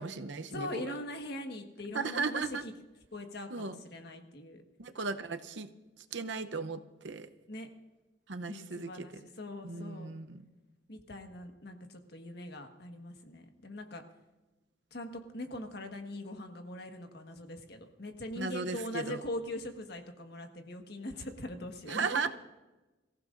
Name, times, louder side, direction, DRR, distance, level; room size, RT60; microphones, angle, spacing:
voice 1, 0.0-0.9 1.9-2.6 3.5-3.7 4.8-5.7 6.0-7.3 8.3-9.2 9.6-10.4 18.4-19.2 21.9-22.3, right 4 dB, 65° right, 9 dB, 0.8 m, -36 dB
voice 2, 0.5-2.7 3.1-4.6 7.5-7.7 8.5-10.1 10.9-14.0 14.9-22.3, left 1 dB, 60° left, 5 dB, 1.5 m, -42 dB
24.0 x 15.0 x 2.6 m, 1.1 s
head